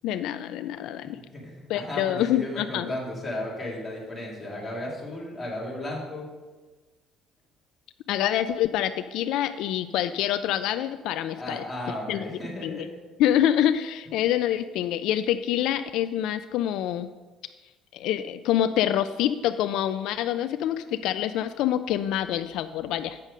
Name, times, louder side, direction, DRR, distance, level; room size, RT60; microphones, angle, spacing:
voice 1, 0.0-1.2 1.7-2.9 8.1-11.6 12.1-12.2 12.6-12.9 13.2-17.1 17.9-23.2, left 11 dB, 75° left, 11 dB, 0.3 m, -26 dB
voice 2, 1.0-6.3 11.4-12.9, left 1 dB, 10° left, -5 dB, 2.4 m, -35 dB
8.3 x 6.4 x 4.9 m, 1.3 s
cardioid pair, 150°, 0 cm